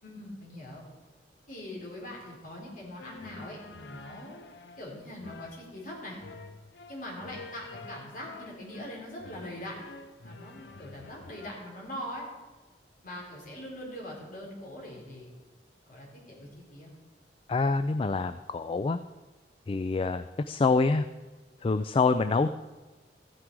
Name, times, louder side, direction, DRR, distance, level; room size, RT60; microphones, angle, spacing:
voice 1, 0.0-0.8 1.5-4.4 4.8-6.2 6.9-9.8 10.2-12.3 13.0-15.3 15.9-16.9, left 1 dB, 50° left, -3 dB, 4.1 m, -42 dB
sound 1, 3.0-11.5, left 3 dB, 75° left, 0.7 m, -48 dB
voice 2, 17.5-19.0 19.7-21.1 21.6-22.5, left 4 dB, 30° left, 11 dB, 0.3 m, -26 dB
14.0 x 9.6 x 4.7 m, 1.2 s
head